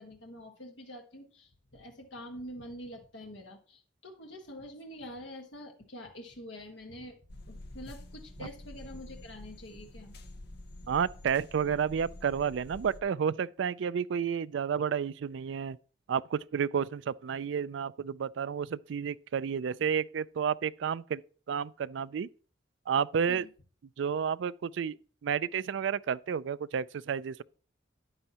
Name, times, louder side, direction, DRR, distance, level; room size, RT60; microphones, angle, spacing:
voice 1, 0.0-7.2 7.5-10.2 23.3-23.5, equal, 75° left, 1.5 m, -46 dB
sound 1, 7.3-13.0, left 1 dB, 60° left, 1.1 m, -48 dB
voice 2, 10.9-15.8 16.1-21.2 21.5-22.3 22.9-23.5 24.0-25.0 25.2-27.4, right 7 dB, 75° right, 0.3 m, -31 dB
9.7 x 8.9 x 2.9 m
head